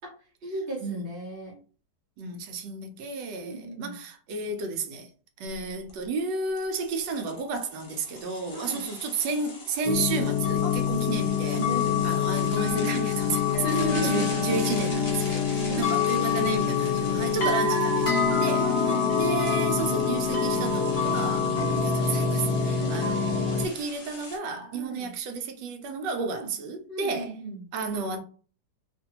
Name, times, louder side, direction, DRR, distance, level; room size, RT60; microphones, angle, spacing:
voice 1, 0.4-1.6 3.4-4.0 8.5-8.8 10.6-10.7 11.5-12.4 13.6-14.6 15.4-17.3 18.5-19.2 19.5-20.2 21.5-22.0 22.8-23.1 24.7-25.1 26.3-26.5 26.9-27.6, right 1 dB, 45° right, 0.7 m, -36 dB
voice 2, 2.2-5.1 5.4-11.6 12.0-27.3 27.7-28.2, right 4 dB, 75° right, 1.2 m, -32 dB
sound 1, 5.5-5.6 5.9-6.0 6.6-24.4, left 2 dB, 85° left, 0.3 m, -42 dB
sound 2, 9.8-23.7, left 6 dB, 40° left, 1.2 m, -25 dB
2.9 x 2.5 x 2.8 m
omnidirectional pair, 1.9 m